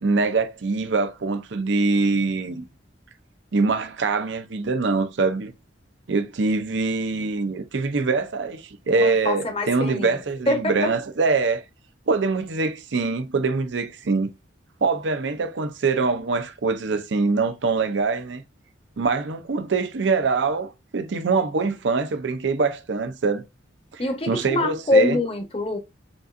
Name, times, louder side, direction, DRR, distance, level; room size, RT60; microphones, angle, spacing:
voice 1, 0.0-2.6 3.5-5.5 6.1-11.6 12.1-14.3 14.8-18.4 19.0-23.4 23.9-25.2, right 4 dB, 75° right, 0.6 m, -24 dB
voice 2, 9.0-10.1 10.5-10.9 24.0-25.8, left 2 dB, 30° left, 0.8 m, -24 dB
5.3 x 2.5 x 2.4 m
head